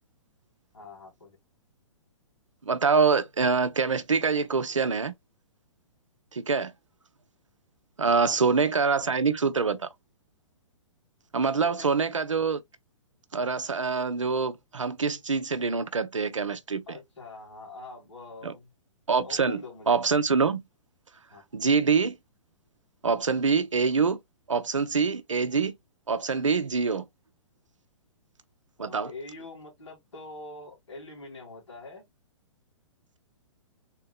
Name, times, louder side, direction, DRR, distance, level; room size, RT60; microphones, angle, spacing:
voice 1, 0.7-1.4 8.1-8.4 11.6-11.9 16.9-18.7 19.2-20.0 21.3-21.4 28.8-32.1, left 2 dB, 65° left, 2.2 m, -44 dB
voice 2, 2.6-5.1 6.3-6.7 8.0-9.9 11.3-12.6 13.3-17.0 18.4-18.5 19.1-20.6 21.5-22.2 23.0-24.2 24.5-25.7 26.1-27.0 28.8-29.1, right 5 dB, 80° right, 0.6 m, -25 dB
3.7 x 2.8 x 2.3 m
figure-of-eight pair, 115°, 16 cm